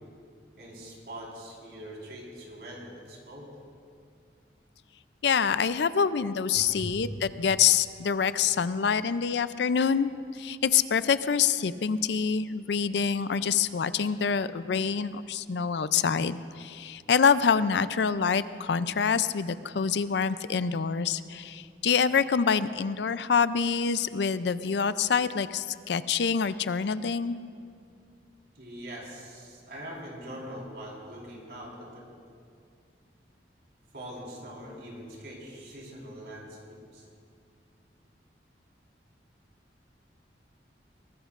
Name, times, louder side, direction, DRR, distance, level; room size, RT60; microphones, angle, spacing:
voice 1, 0.6-3.5 6.5-6.9 28.5-32.0 33.9-37.0, equal, 65° right, -3 dB, 4.5 m, -42 dB
voice 2, 5.2-27.4, left 6 dB, 75° left, 14 dB, 0.5 m, -26 dB
22.0 x 19.0 x 2.5 m, 2.3 s
head